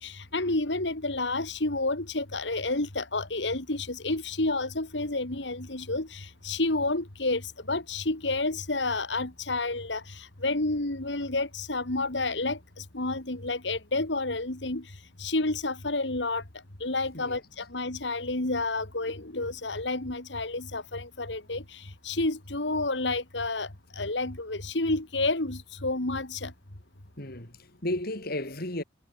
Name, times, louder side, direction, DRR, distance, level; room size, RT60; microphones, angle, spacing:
voice 1, 0.0-14.8 15.2-16.4 16.8-23.7 24.0-26.5, left 2 dB, 70° left, 2.7 m, -30 dB
voice 2, 27.2-28.8, left 1 dB, 55° left, 4.6 m, -34 dB
head